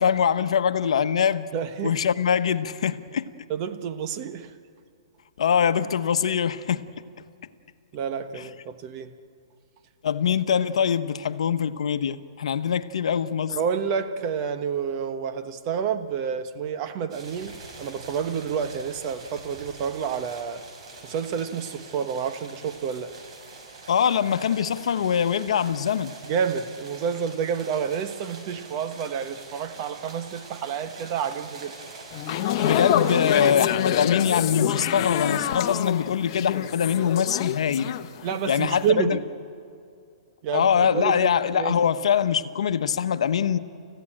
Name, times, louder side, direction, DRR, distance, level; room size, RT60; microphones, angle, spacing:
voice 1, 0.0-1.5 1.8-3.3 5.4-6.8 8.3-8.4 10.0-13.6 23.9-26.1 32.6-38.0 38.5-39.2 40.5-43.6, left 8 dB, 75° left, 0.9 m, -23 dB
voice 2, 1.5-2.0 3.5-4.5 7.9-9.1 13.5-20.6 21.0-23.1 26.2-31.7 38.2-39.2 40.4-41.8, right 7 dB, 35° right, 1.2 m, -29 dB
sound 1, 17.1-33.5, right 3 dB, 65° right, 5.7 m, -44 dB
sound 2, 32.1-38.4 38.7-38.9, left 10 dB, 40° left, 1.0 m, -27 dB
30.0 x 15.5 x 8.7 m
hypercardioid pair, 150°, 3 cm